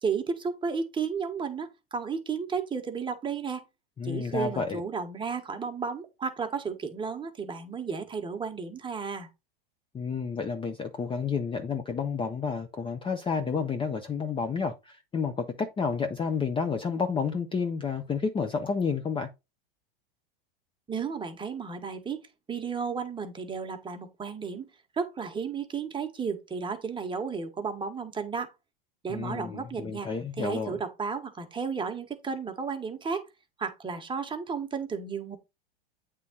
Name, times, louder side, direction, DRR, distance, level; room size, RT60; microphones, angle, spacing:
voice 1, 0.0-3.6 4.0-9.3 20.9-24.7 25.0-28.5 29.0-30.1 30.4-33.2 33.6-35.4, right 5 dB, 15° right, 1.3 m, -33 dB
voice 2, 4.0-4.8 9.9-19.3 29.1-30.8, left 5 dB, 15° left, 0.7 m, -30 dB
8.4 x 3.7 x 4.0 m
hypercardioid pair, 110°, 30 cm